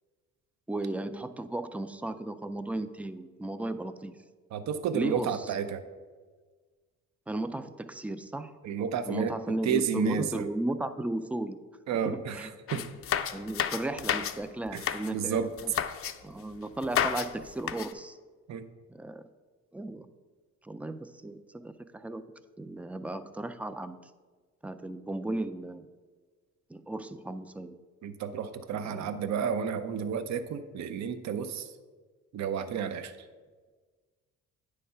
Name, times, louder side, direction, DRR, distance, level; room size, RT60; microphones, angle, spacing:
voice 1, 0.7-4.2 4.9-5.5 7.3-8.5 9.1-11.6 12.0-12.5 12.8-12.9 13.3-15.7 16.2-18.2 18.9-19.3 19.7-20.1 20.6-22.3 22.6-24.0 24.6-25.8 26.7-27.8 28.9-29.1, right 2 dB, 5° right, 11 dB, 0.3 m, -35 dB
voice 2, 4.5-5.8 8.6-9.4 9.6-10.5 11.9-12.8 14.7-14.8 15.1-15.5 18.5-18.7 28.0-31.7 32.3-33.1, right 7 dB, 65° right, 11 dB, 0.6 m, -31 dB
sound 1, 12.7-14.4 14.7-15.1 15.6-16.1 16.8-17.3 17.6-17.9, left 9 dB, 50° left, 0.5 m, -31 dB
9.4 x 3.3 x 5.5 m, 1.4 s
cardioid pair, 90°, 30 cm